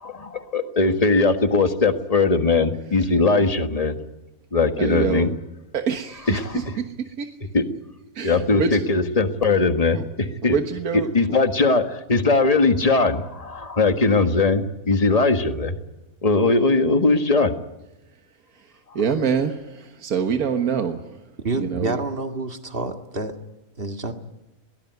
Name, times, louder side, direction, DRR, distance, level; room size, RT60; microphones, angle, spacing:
voice 1, 0.0-4.0 4.5-5.3 6.3-6.8 7.5-7.6 8.2-10.6 10.9-15.8 16.2-17.5, left 3 dB, 25° left, 8 dB, 1.6 m, -20 dB
voice 2, 4.8-5.3 5.7-6.8 7.2-7.3 8.2-8.8 9.9-10.0 10.5-11.1 19.0-21.0 21.6-22.0, right 6 dB, 90° right, 6 dB, 1.8 m, -25 dB
voice 3, 21.4-23.4 23.8-24.1, right 2 dB, 40° right, 6 dB, 2.1 m, -28 dB
21.5 x 19.5 x 9.4 m, 0.99 s
omnidirectional pair, 1.5 m